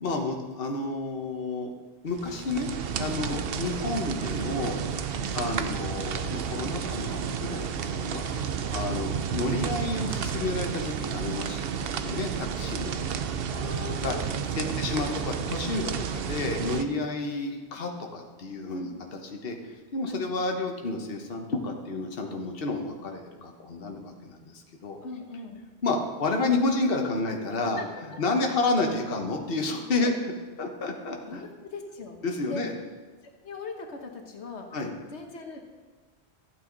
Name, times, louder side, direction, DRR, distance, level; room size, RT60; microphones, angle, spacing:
voice 1, 0.0-1.7 2.0-2.7 3.0-4.8 5.3-8.3 8.7-13.0 14.0-14.2 14.6-25.0 25.8-27.8 28.2-30.1 30.6-31.4 32.2-32.7 34.7-34.9, left 3 dB, 60° left, 2 dB, 1.3 m, -30 dB
sound 1, 2.1-16.8, right 7 dB, 65° right, 0.8 m, -31 dB
voice 2, 13.5-14.7 16.7-16.9 18.7-18.9 20.0-20.3 25.0-25.6 27.6-28.0 28.4-28.6 29.9-30.1 31.2-32.2 32.5-32.6 33.2-34.7 35.1-35.7, left 3 dB, 85° left, 3 dB, 1.4 m, -40 dB
14.0 x 8.9 x 3.9 m, 1.4 s
omnidirectional pair, 1.1 m